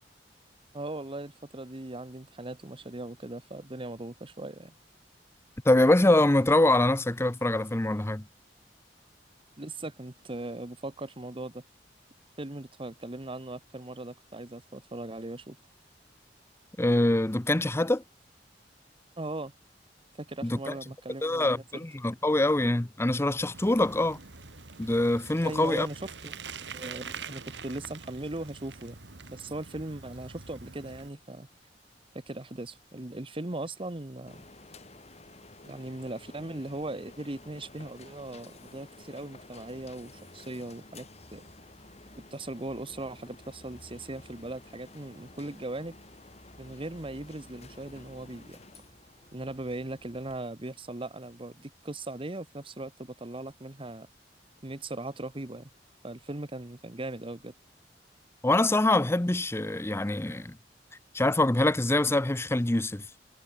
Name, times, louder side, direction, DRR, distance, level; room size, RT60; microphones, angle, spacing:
voice 1, 0.7-4.7 9.6-11.6 12.4-15.6 19.2-19.5 20.2-21.5 25.4-26.3 26.7-29.0 29.3-31.5 32.1-34.4 35.6-41.1 41.3-41.4 42.1-46.0 46.6-48.6 49.3-54.1 54.6-55.7 56.0-57.5, right 2 dB, 30° right, 1.2 m, -39 dB
voice 2, 5.6-8.2 16.8-18.0 20.4-20.7 21.2-24.2 24.8-25.9 58.4-60.5 61.1-63.0, left 1 dB, 15° left, 0.6 m, -24 dB
Bicycle, 23.5-31.1, right 5 dB, 75° right, 2.6 m, -45 dB
sound 1, 34.3-50.4, left 2 dB, 40° left, 5.7 m, -52 dB
head